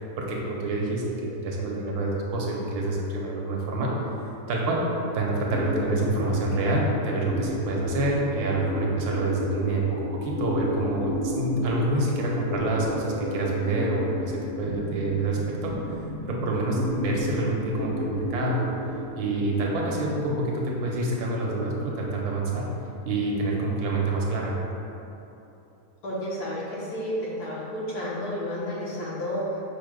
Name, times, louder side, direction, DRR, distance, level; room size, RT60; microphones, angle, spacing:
voice 1, 0.2-3.9 4.5-4.8 5.1-15.7 16.2-18.7 19.2-22.7 23.0-24.6, right 2 dB, 80° right, -2 dB, 1.2 m, -27 dB
sound 1, 5.5-24.2, left 1 dB, 50° left, 0.7 m, -34 dB
voice 2, 26.0-29.6, equal, 80° left, -6 dB, 1.5 m, -31 dB
4.9 x 2.1 x 4.7 m, 2.9 s
omnidirectional pair, 1.6 m